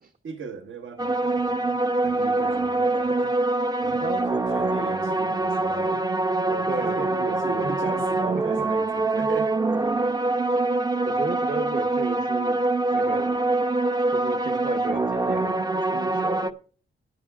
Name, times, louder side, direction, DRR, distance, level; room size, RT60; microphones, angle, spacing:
voice 1, 0.2-3.4 3.8-6.1 6.8-9.6, right 5 dB, 65° right, 1.4 m, -37 dB
sound 1, 1.0-16.5, right 2 dB, 20° right, 0.7 m, -24 dB
voice 2, 2.1-2.4 3.9-4.3 6.5-7.1 7.6-7.7 8.5-8.6 11.0-12.6 12.9-13.3 14.1-16.5, right 3 dB, 45° right, 1.1 m, -34 dB
19.0 x 9.7 x 2.4 m
wide cardioid pair, 120°, 21 cm